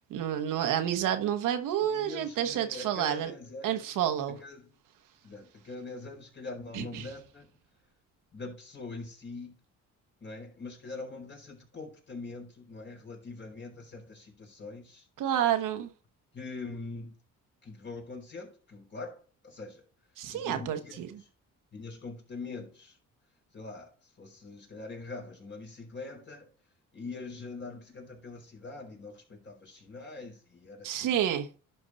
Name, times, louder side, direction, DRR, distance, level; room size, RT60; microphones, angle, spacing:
voice 1, 0.1-3.3 3.6-4.4 6.7-7.1 15.2-15.9 20.2-21.1 30.8-31.6, right 10 dB, 80° right, 1.3 m, -29 dB
voice 2, 1.8-3.8 4.3-4.7 5.2-7.5 8.3-9.6 10.2-15.1 16.3-17.2 17.6-19.8 20.3-21.2 21.7-23.0 23.5-26.5 26.9-31.3, left 3 dB, 35° left, 4.4 m, -43 dB
11.0 x 4.7 x 4.1 m
cardioid pair, 95°, 32 cm